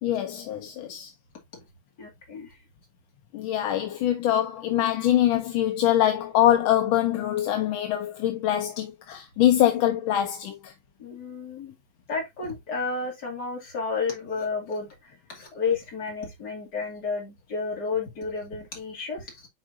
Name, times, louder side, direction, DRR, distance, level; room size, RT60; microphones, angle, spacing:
voice 1, 0.0-1.1 3.3-10.7, left 12 dB, 80° left, 1.6 m, -24 dB
voice 2, 2.0-2.6 11.0-11.7 12.1-19.5, left 4 dB, 50° left, 3.0 m, -32 dB
7.7 x 4.7 x 2.6 m
omnidirectional pair, 2.2 m